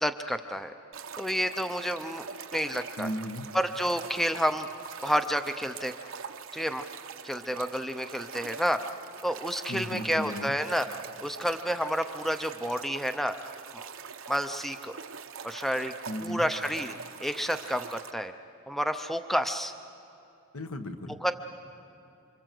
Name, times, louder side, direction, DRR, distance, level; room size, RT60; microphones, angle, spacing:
voice 1, 0.0-0.7 1.2-3.1 3.5-4.7 5.0-5.9 6.5-6.9 7.2-8.8 9.2-10.9 11.2-13.3 13.7-13.9 14.3-14.9 15.4-15.9 16.2-16.9 17.2-18.3 18.7-19.7 21.2-21.3, equal, ahead, 8 dB, 0.6 m, -30 dB
sound 1, 0.9-18.1, right 6 dB, 60° right, 0.9 m, -44 dB
voice 2, 3.0-3.5 9.7-10.5 16.1-16.5 20.5-21.2, left 1 dB, 75° left, 6 dB, 1.6 m, -35 dB
28.5 x 25.0 x 7.8 m, 2.7 s
head